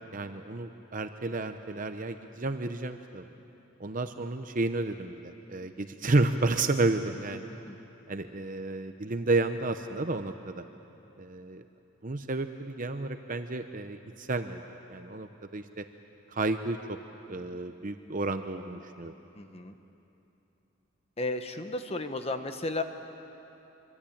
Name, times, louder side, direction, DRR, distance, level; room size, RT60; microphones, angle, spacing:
voice 1, 0.1-3.2 3.8-7.4 8.1-10.6 11.2-11.6 12.0-15.8 16.3-17.0 17.3-19.1, right 2 dB, 40° right, 7 dB, 0.8 m, -31 dB
voice 2, 19.4-19.7 21.2-22.8, left 2 dB, 30° left, 7 dB, 1.1 m, -34 dB
25.5 x 24.5 x 8.7 m, 3.0 s
head